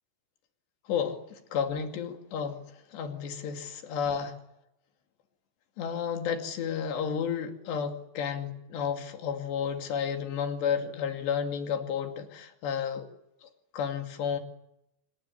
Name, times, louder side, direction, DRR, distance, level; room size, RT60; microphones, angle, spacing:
voice 1, 0.9-2.6 2.9-4.4 5.8-13.1 13.4-14.4, left 7 dB, 80° left, 6 dB, 4.7 m, -32 dB
26.5 x 21.5 x 9.8 m, 0.81 s
omnidirectional pair, 4.9 m